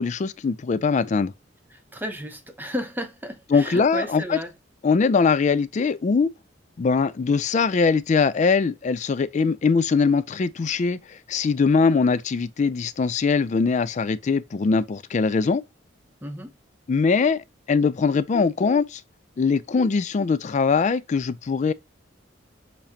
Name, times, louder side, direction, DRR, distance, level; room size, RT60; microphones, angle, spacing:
voice 1, 0.0-1.3 3.5-4.4 4.8-6.3 6.8-15.6 16.9-19.0 19.4-21.7, left 5 dB, 40° left, 0.3 m, -22 dB
voice 2, 1.7-4.5 16.2-16.6, equal, 10° right, 0.8 m, -33 dB
6.8 x 2.7 x 2.8 m
head